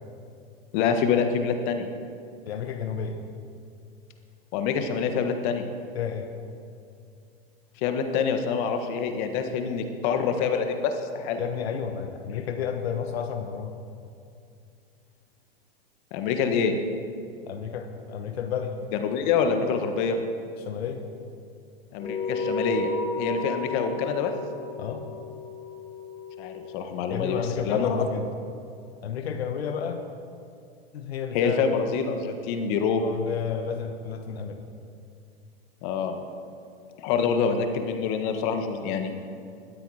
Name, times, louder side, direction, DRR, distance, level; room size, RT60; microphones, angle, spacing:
voice 1, 0.7-1.9 4.5-5.6 7.8-11.4 16.1-16.7 19.0-20.2 21.9-22.9 23.2-24.3 26.4-28.0 31.3-33.0 35.8-36.2 37.0-39.1, left 6 dB, 50° left, 6 dB, 1.5 m, -26 dB
voice 2, 2.5-3.2 5.9-6.3 11.4-13.7 17.5-18.7 20.6-21.0 24.8-25.0 27.1-28.3 29.0-30.0 30.9-31.8 33.0-34.6, left 7 dB, 80° left, 6 dB, 1.2 m, -31 dB
sound 1, 22.0-26.8, left 3 dB, 30° left, 3.5 m, -33 dB
21.5 x 8.4 x 4.9 m, 2.5 s
hypercardioid pair, 125°, 31 cm